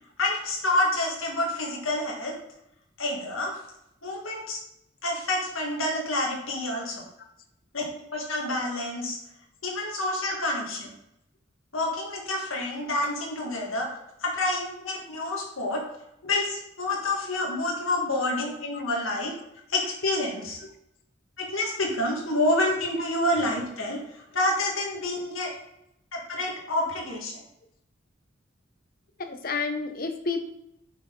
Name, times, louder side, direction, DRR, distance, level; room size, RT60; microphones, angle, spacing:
voice 1, 0.2-2.3 3.0-3.6 4.0-4.6 5.0-7.0 7.7-7.9 8.1-9.2 9.6-10.9 11.7-13.9 14.2-15.8 16.2-19.3 19.7-20.6 21.4-24.0 24.3-25.5 26.1-27.4, left 1 dB, 90° left, -1 dB, 1.8 m, -28 dB
voice 2, 29.3-30.5, left 4 dB, 45° left, 7 dB, 0.8 m, -30 dB
6.4 x 6.0 x 3.8 m, 0.80 s
head